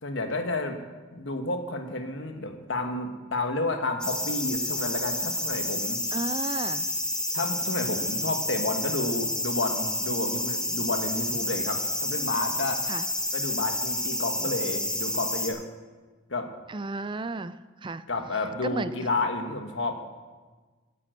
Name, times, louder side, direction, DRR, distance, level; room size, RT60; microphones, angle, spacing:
voice 1, 0.0-0.8 1.1-6.0 7.3-12.8 13.3-15.6 16.3-16.5 18.1-19.9, left 2 dB, 60° left, 5 dB, 1.3 m, -31 dB
sound 1, 4.0-15.5, left 1 dB, 5° left, 1.1 m, -29 dB
voice 2, 6.1-6.9 12.9-13.1 16.7-18.1 18.6-18.9, right 3 dB, 25° right, 14 dB, 0.4 m, -33 dB
9.7 x 9.3 x 7.7 m, 1.3 s
head